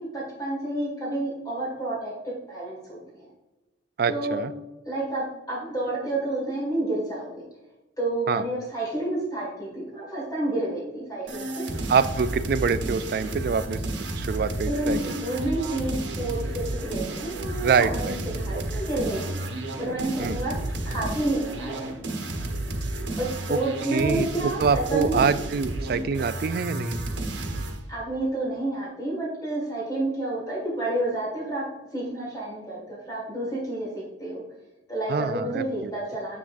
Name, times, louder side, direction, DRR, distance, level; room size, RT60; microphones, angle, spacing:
voice 1, 0.0-3.3 4.1-4.4 4.9-7.3 8.0-11.7 14.7-19.4 19.8-20.5 20.9-21.9 23.2-25.2 27.9-31.6 31.9-34.4 34.9-36.4, right 1 dB, 20° left, -4 dB, 1.8 m, -30 dB
voice 2, 4.0-4.5 8.3-8.4 11.9-13.8 14.1-15.1 17.6-18.6 20.2-20.4 23.5-23.6 23.9-27.0 35.1-35.9, right 5 dB, 55° right, 14 dB, 0.3 m, -25 dB
sound 1, 11.3-27.8, right 1 dB, 85° right, 0.9 m, -32 dB
7.0 x 6.0 x 2.5 m, 1.1 s
head